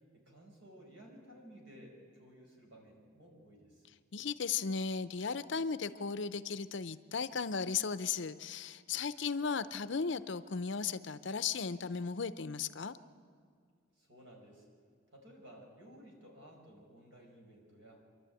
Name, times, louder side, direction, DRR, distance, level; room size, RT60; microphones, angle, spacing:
voice 1, 0.1-3.8 14.0-14.7 15.1-18.0, equal, 65° right, 0 dB, 5.0 m, -56 dB
voice 2, 4.1-13.0, left 5 dB, 60° left, 14 dB, 0.6 m, -36 dB
27.0 x 12.0 x 9.0 m, 2.1 s
head